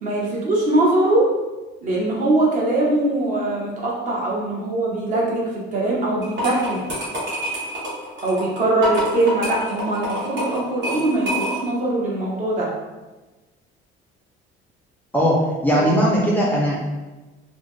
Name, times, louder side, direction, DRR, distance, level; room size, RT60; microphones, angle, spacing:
voice 1, 0.0-1.3 1.8-5.4 5.7-6.8 8.2-12.7 15.7-16.0, right 2 dB, 40° right, -3 dB, 0.8 m, -21 dB
sound 1, 6.2-11.8, equal, 65° right, 1.3 m, -27 dB
voice 2, 15.1-16.8, equal, 10° left, -5 dB, 0.4 m, -19 dB
3.8 x 2.0 x 3.0 m, 1.2 s
cardioid pair, 160°, 20 cm